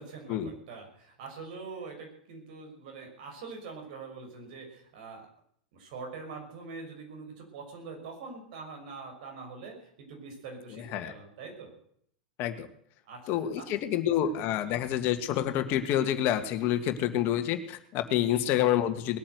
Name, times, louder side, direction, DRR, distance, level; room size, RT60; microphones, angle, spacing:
voice 1, 0.0-5.3 5.7-11.7 13.1-13.7 14.0-14.1 18.3-18.5, right 4 dB, 65° right, 2 dB, 5.9 m, -44 dB
voice 2, 13.3-19.2, left 11 dB, 50° left, 8 dB, 1.8 m, -28 dB
20.0 x 8.8 x 8.1 m, 0.68 s
hypercardioid pair, 105°, 5 cm